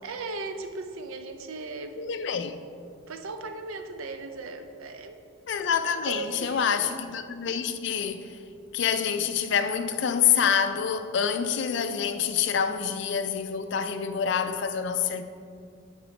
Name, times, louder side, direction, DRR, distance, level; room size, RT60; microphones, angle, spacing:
voice 1, 0.0-2.0 3.1-5.2 5.7-6.8, right 3 dB, 75° right, 0.5 m, -37 dB
voice 2, 2.0-2.6 5.5-8.4 8.7-15.2, left 7 dB, 55° left, 0.4 m, -27 dB
8.3 x 5.2 x 3.2 m
head